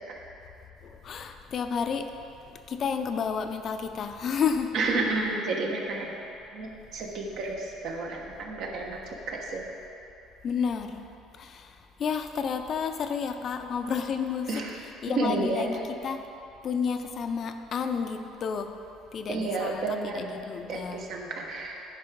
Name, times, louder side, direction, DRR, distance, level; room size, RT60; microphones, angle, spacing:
voice 1, 0.8-2.1 2.7-4.7 10.4-11.0 11.4-11.7 12.0-14.5 15.0-15.8 16.0-16.2 16.6-18.7 19.1-21.1, left 6 dB, 45° left, 7 dB, 0.5 m, -31 dB
voice 2, 4.7-6.1 6.5-9.0 9.3-9.7 14.5-14.8 15.1-15.7 19.3-20.3 20.7-21.8, right 3 dB, 60° right, 0 dB, 1.3 m, -31 dB
10.5 x 4.8 x 5.3 m, 2.7 s
cardioid pair, 125°, 0 cm